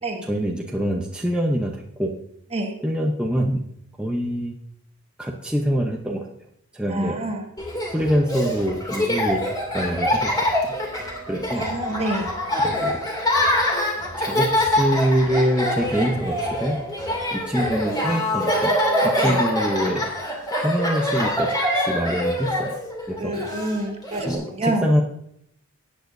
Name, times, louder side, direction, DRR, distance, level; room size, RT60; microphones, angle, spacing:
voice 1, 0.2-2.1 2.8-3.6 4.0-4.5 5.2-6.3 6.7-7.2 7.9-10.5 11.3-11.7 12.6-12.9 14.2-16.8 17.3-18.7 19.0-20.0 20.6-22.7 23.1-23.3 24.2-25.0, equal, 5° right, -2 dB, 0.8 m, -24 dB
voice 2, 6.9-7.4 11.5-12.3 19.1-19.4 23.2-24.9, right 1 dB, 30° right, 3 dB, 1.3 m, -27 dB
Laughter, 7.6-24.3, left 1 dB, 20° left, 2.6 m, -24 dB
18.0 x 8.4 x 2.7 m, 0.73 s
head